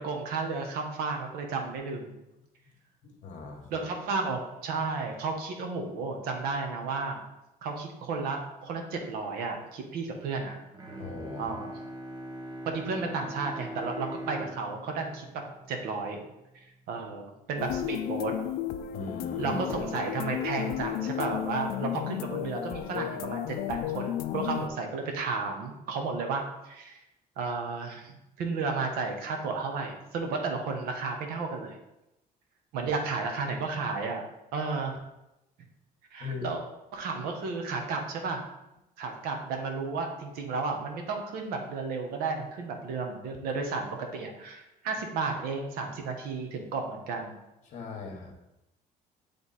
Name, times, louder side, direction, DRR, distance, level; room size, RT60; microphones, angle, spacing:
voice 1, 0.0-2.1 3.7-7.2 7.6-10.6 11.4-11.7 12.7-15.3 15.7-16.2 16.5-18.3 19.4-27.0 27.4-31.8 32.7-34.2 34.5-35.0 36.1-36.6 36.9-38.4 39.0-47.4, right 4 dB, 85° right, 3 dB, 1.1 m, -33 dB
voice 2, 3.0-3.8 11.0-11.5 18.9-19.6 36.2-36.5 47.7-48.3, left 4 dB, 55° left, 2 dB, 1.3 m, -39 dB
Bowed string instrument, 10.7-16.4, right 1 dB, 25° right, 0.7 m, -42 dB
sound 1, 17.6-24.7, left 11 dB, 80° left, 0.4 m, -33 dB
8.1 x 3.4 x 4.1 m, 0.92 s
cardioid pair, 170°, 15 cm